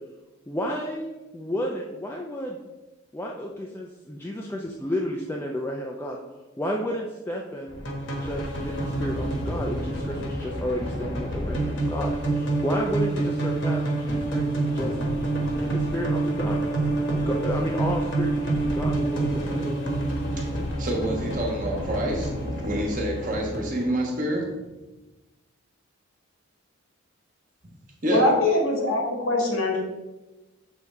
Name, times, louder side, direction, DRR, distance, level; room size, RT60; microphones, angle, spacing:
voice 1, 0.5-2.6 3.1-6.2 6.6-7.8 8.2-15.0 15.5-16.6 17.1-19.7 29.7-29.8, equal, 10° left, -1 dB, 0.4 m, -32 dB
sound 1, 7.7-23.9, right 2 dB, 55° left, 1.2 m, -27 dB
voice 2, 20.8-24.5 28.0-28.2, right 1 dB, 40° right, -1 dB, 1.3 m, -27 dB
voice 3, 28.1-29.8, left 2 dB, 80° left, 0 dB, 1.6 m, -22 dB
7.0 x 3.6 x 4.3 m, 1.1 s
head